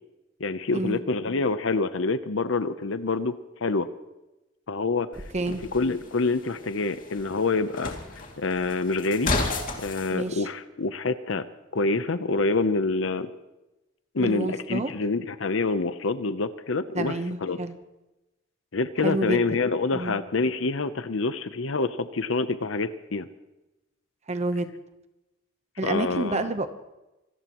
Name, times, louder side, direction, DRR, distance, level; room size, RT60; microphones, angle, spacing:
voice 1, 0.4-3.3 3.6-3.9 4.7-5.1 5.5-7.9 8.4-11.4 11.7-13.3 14.1-17.1 17.4-17.6 18.7-23.3 25.8-26.4, left 3 dB, 70° left, 12 dB, 0.8 m, -26 dB
sound 1, 5.1-10.1, left 3 dB, 45° left, 2.5 m, -33 dB
voice 2, 10.1-10.5 14.2-14.9 16.9-17.8 19.0-19.4 19.9-20.2 24.3-24.7 25.8-26.7, right 2 dB, 35° right, 9 dB, 0.9 m, -29 dB
26.0 x 18.0 x 3.1 m, 0.99 s
head